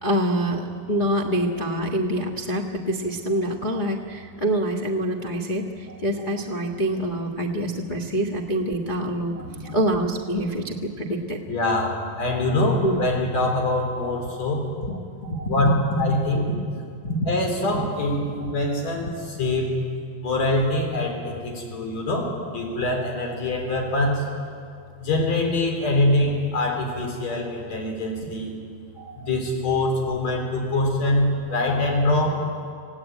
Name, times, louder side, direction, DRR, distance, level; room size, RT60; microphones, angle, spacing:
voice 1, 0.0-11.4 12.5-13.0 14.8-15.6 16.5-16.6 17.0-17.3 17.7-17.8 18.4-18.5 29.0-29.3, right 1 dB, 85° left, -1 dB, 0.4 m, -26 dB
voice 2, 11.5-14.6 15.5-15.7 16.0-16.5 17.3-19.7 20.2-24.2 25.0-28.5 29.2-32.4, left 2 dB, 55° left, 1 dB, 5.1 m, -24 dB
26.5 x 17.5 x 9.2 m, 2.3 s
omnidirectional pair, 3.8 m